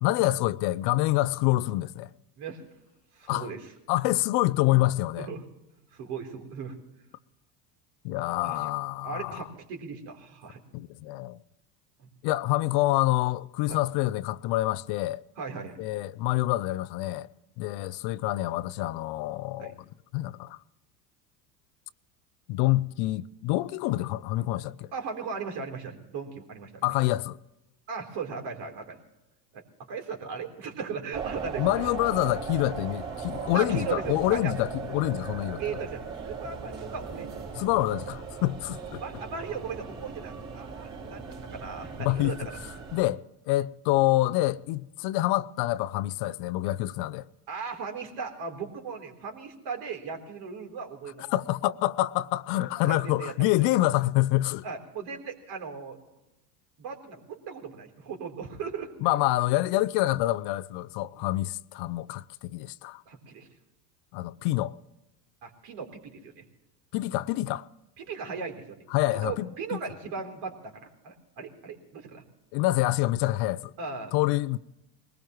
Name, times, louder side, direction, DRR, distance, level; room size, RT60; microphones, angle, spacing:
voice 1, 0.0-2.1 3.3-3.5 3.9-5.3 8.0-9.4 10.7-11.4 12.2-15.2 15.8-17.3 17.6-19.7 20.1-20.6 22.5-24.9 26.8-27.4 31.6-35.6 37.5-39.0 42.0-42.3 42.9-47.3 51.3-54.6 59.0-63.0 64.1-64.7 66.9-67.6 68.9-69.5 72.5-73.7 74.1-74.6, left 17 dB, 55° left, 0.6 m, -26 dB
voice 2, 3.1-3.7 5.2-5.4 5.9-6.8 8.4-8.6 9.0-10.6 13.7-13.8 15.4-15.8 19.6-19.7 24.9-26.8 27.9-29.0 29.5-29.6 29.9-31.7 33.5-34.5 35.6-37.4 39.0-42.6 47.5-51.2 52.9-53.5 54.6-56.0 56.8-58.9 61.2-61.3 63.1-63.5 65.4-66.4 68.0-68.8 69.2-72.2 73.8-74.1, right 5 dB, 60° right, 3.8 m, -37 dB
sound 1, 31.1-43.1, right 5 dB, 35° right, 4.2 m, -38 dB
21.5 x 19.5 x 3.1 m
hypercardioid pair, 80°, 48 cm